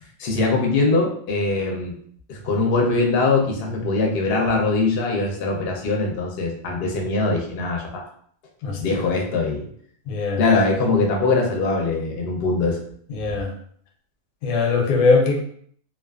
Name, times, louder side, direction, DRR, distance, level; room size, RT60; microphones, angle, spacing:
voice 1, 0.2-2.0 2.3-8.0 8.8-9.7 10.4-12.8, left 3 dB, 60° left, 0 dB, 0.6 m, -22 dB
voice 2, 8.6-9.0 10.1-10.4 13.1-13.5 14.4-15.4, left 4 dB, 90° left, 2 dB, 1.0 m, -21 dB
2.4 x 2.3 x 2.3 m, 0.62 s
omnidirectional pair, 1.5 m